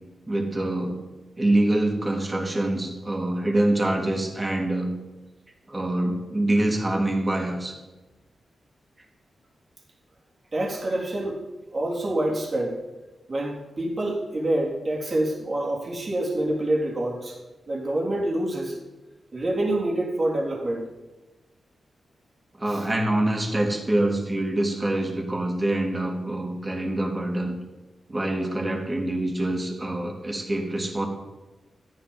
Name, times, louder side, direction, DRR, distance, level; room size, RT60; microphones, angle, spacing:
voice 1, 0.3-1.0 1.4-4.9 5.7-7.7 22.6-27.6 28.1-31.1, right 1 dB, 25° right, 0 dB, 3.4 m, -25 dB
voice 2, 10.5-11.4 11.7-12.8 13.3-17.4 17.7-18.8 19.3-20.9 22.7-22.9, right 1 dB, 45° right, -4 dB, 3.5 m, -26 dB
13.5 x 11.0 x 5.5 m, 1.1 s
cardioid pair, 65°, 0 cm